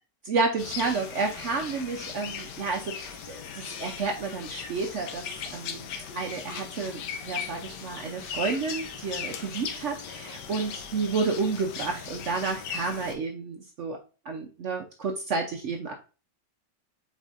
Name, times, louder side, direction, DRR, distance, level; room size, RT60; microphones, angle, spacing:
voice 1, 0.2-5.2 5.5-5.9 6.1-14.0 14.3-15.9, right 4 dB, 70° right, 3 dB, 0.7 m, -30 dB
sound 1, 0.6-13.1, left 7 dB, 75° left, 1.3 m, -38 dB
5.0 x 4.2 x 2.5 m, 0.33 s
omnidirectional pair, 1.9 m